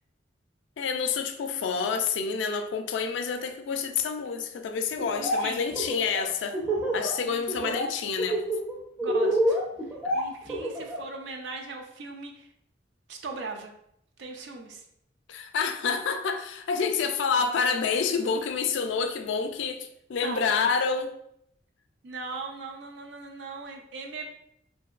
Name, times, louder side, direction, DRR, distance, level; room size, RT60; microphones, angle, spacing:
voice 1, 0.8-6.6 6.9-8.4 10.0-10.2 15.3-21.1, left 5 dB, 75° left, 7 dB, 0.3 m, -28 dB
Laughter, 5.0-5.4 5.7-7.1 7.5-7.9 8.2-11.0, right 1 dB, 10° right, 0.5 m, -27 dB
voice 2, 5.1-5.7 7.2-7.8 9.0-9.6 10.1-12.5 13.1-13.7 14.2-14.8 20.2-20.5 22.0-24.3, right 3 dB, 70° right, 3 dB, 0.4 m, -39 dB
2.9 x 2.6 x 2.4 m, 0.75 s
head